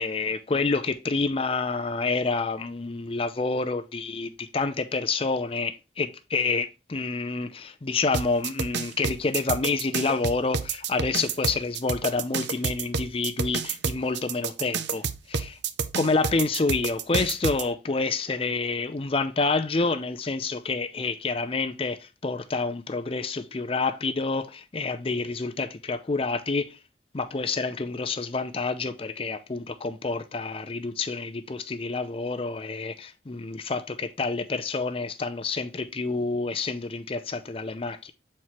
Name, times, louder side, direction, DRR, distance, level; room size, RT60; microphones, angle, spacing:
voice 1, 0.0-15.5 16.0-26.8 27.1-38.1, left 3 dB, 30° left, 0.5 m, -28 dB
sound 1, 8.1-17.6, right 5 dB, 80° right, 0.6 m, -29 dB
7.5 x 4.4 x 3.0 m
head